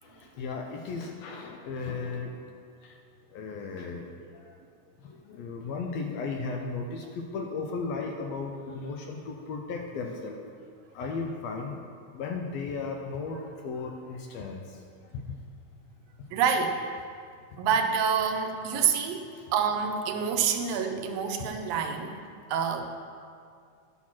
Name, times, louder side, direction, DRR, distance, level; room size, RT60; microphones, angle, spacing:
voice 1, 0.0-2.4 2.8-3.0 3.3-4.5 5.0-10.4 10.9-11.8 12.1-14.8 15.1-15.4 19.1-19.5, left 4 dB, 75° left, 2 dB, 1.6 m, -36 dB
voice 2, 16.3-16.8 17.6-22.2 22.5-22.9, right 6 dB, 80° right, 4 dB, 1.5 m, -27 dB
11.5 x 4.5 x 5.9 m, 2.2 s
omnidirectional pair, 3.5 m